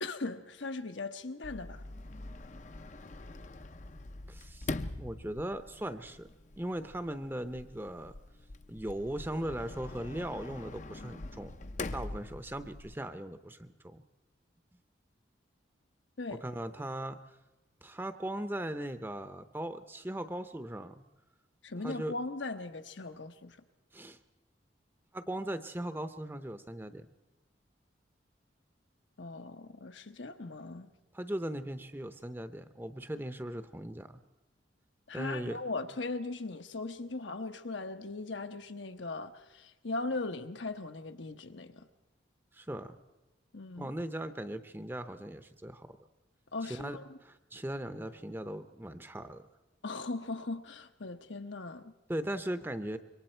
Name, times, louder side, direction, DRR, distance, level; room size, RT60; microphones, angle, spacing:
voice 1, 0.0-1.8 16.2-16.4 21.6-23.6 29.2-30.9 35.1-41.9 43.5-43.9 46.5-47.2 49.8-51.9, left 3 dB, 75° left, 1.1 m, -39 dB
Sliding door, 1.4-13.0, left 2 dB, 40° left, 0.6 m, -44 dB
voice 2, 4.3-4.7 5.0-6.3 6.6-8.1 8.7-11.5 11.9-14.0 16.3-17.2 17.8-21.0 21.8-22.1 23.9-24.2 25.1-27.1 31.1-34.2 35.1-35.6 42.5-43.0 43.8-45.9 46.7-49.5 52.1-53.0, right 1 dB, 10° right, 0.7 m, -38 dB
26.0 x 23.0 x 4.5 m
head